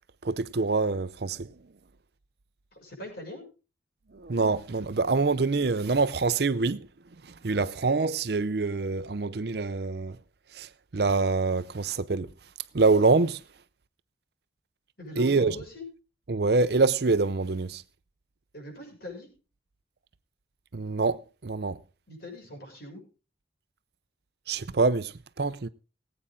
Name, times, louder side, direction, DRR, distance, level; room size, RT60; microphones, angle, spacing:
voice 1, 0.2-1.5 4.1-6.9 7.4-10.2 10.5-12.3 12.7-13.4 15.2-15.6 16.3-17.8 20.7-21.8 24.5-25.7, right 3 dB, 55° right, 0.6 m, -25 dB
voice 2, 2.7-3.5 15.0-15.9 18.5-19.3 22.1-23.0, left 1 dB, 55° left, 6.6 m, -41 dB
20.0 x 8.8 x 3.8 m
head